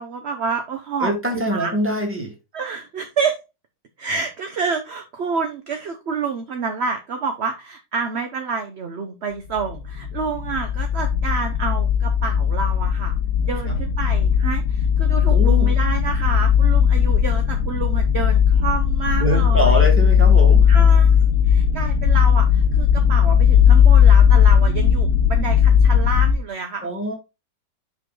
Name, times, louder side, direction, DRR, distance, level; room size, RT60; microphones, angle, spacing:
voice 1, 0.0-1.7 2.5-3.4 4.0-13.2 13.4-19.8 20.7-21.2 21.4-26.9, right 5 dB, 45° right, 5 dB, 0.9 m, -28 dB
voice 2, 1.0-2.4 13.7-13.8 15.3-15.7 19.1-20.9 26.8-27.1, equal, 5° right, 1 dB, 2.2 m, -24 dB
sound 1, 9.6-26.3, left 8 dB, 55° left, 1.5 m, -16 dB
6.0 x 5.2 x 3.9 m, 0.25 s
omnidirectional pair, 2.0 m